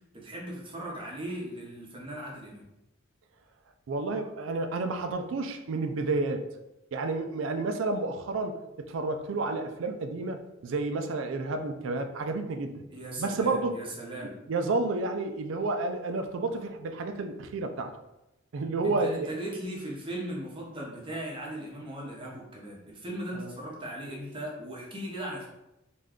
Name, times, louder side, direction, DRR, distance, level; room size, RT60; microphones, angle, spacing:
voice 1, 0.1-2.6 12.9-14.3 18.8-25.5, right 1 dB, 25° right, -4 dB, 0.7 m, -38 dB
voice 2, 3.9-6.5 6.9-8.6 8.9-12.8 13.2-13.8 14.5-17.9 18.5-19.3 23.3-23.5, right 3 dB, 70° right, 6 dB, 0.4 m, -30 dB
2.5 x 2.3 x 3.5 m, 0.92 s
head